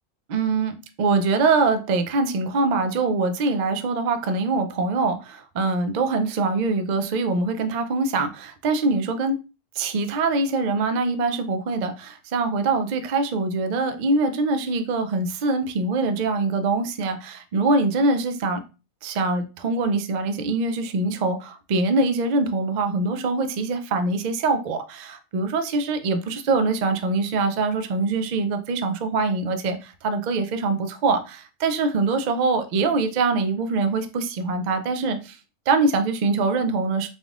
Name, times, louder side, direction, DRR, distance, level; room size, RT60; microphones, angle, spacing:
voice 1, 0.3-9.4 9.8-18.6 19.0-35.4 35.7-37.1, right 3 dB, 75° right, 0.4 m, -23 dB
4.0 x 3.5 x 2.4 m
omnidirectional pair, 1.4 m